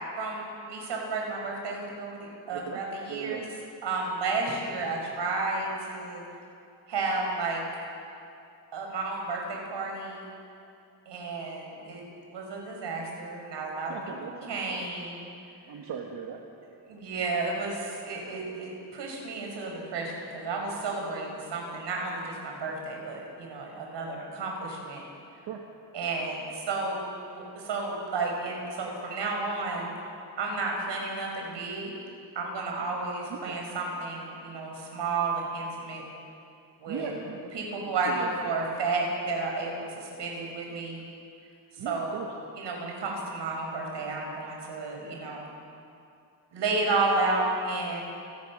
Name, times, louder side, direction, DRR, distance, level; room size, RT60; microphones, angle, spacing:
voice 1, 0.2-3.4 3.8-6.2 6.9-7.6 8.7-10.3 11.1-12.0 12.3-14.0 14.2-15.3 16.9-25.0 25.9-29.9 30.4-31.9 32.3-36.0 36.8-37.1 37.5-41.0 41.8-45.5 46.5-48.0, right 3 dB, 85° right, 0 dB, 6.1 m, -32 dB
voice 2, 2.5-2.8 3.1-3.5 13.9-14.8 15.7-16.4 25.4-25.6 33.3-33.6 36.9-37.5 38.1-38.6 41.8-42.3, right 7 dB, 65° right, 1 dB, 1.9 m, -38 dB
29.5 x 18.0 x 6.5 m, 2.6 s
wide cardioid pair, 170°, 42 cm